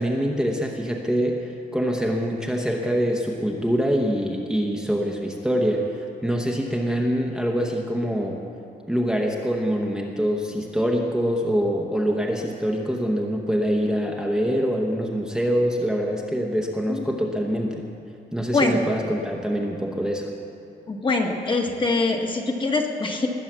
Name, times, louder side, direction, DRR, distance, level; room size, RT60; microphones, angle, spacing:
voice 1, 0.0-8.4 8.9-17.8 18.3-20.3, equal, 5° right, 0 dB, 1.0 m, -24 dB
voice 2, 20.9-23.3, left 3 dB, 25° left, 2 dB, 1.4 m, -23 dB
20.0 x 8.8 x 7.3 m, 2.7 s
wide cardioid pair, 175°, 18 cm